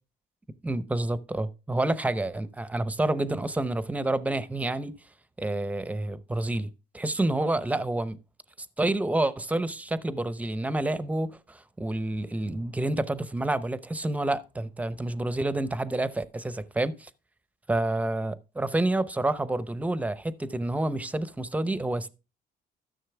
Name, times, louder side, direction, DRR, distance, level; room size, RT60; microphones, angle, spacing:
voice 1, 0.6-5.0 5.4-8.2 8.8-17.1 17.7-22.1, right 2 dB, 10° right, 0.8 m, -28 dB
13.0 x 6.4 x 3.4 m
cardioid pair, 110°, 17 cm